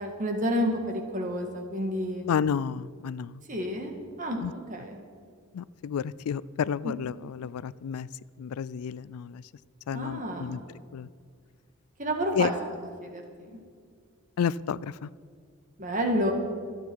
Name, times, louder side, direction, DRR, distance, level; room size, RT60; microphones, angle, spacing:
voice 1, 0.0-2.3 3.5-3.9 4.2-4.4 4.7-5.0 9.9-10.6 12.0-12.5 13.0-13.6 15.8-16.3, equal, 35° right, 3 dB, 1.9 m, -30 dB
voice 2, 2.3-3.4 4.4-4.5 5.5-8.1 8.4-9.4 9.9-10.6 10.9-11.1 12.3-12.5 14.4-15.1, left 7 dB, 85° left, 20 dB, 0.4 m, -31 dB
25.5 x 9.2 x 4.7 m, 2.1 s
head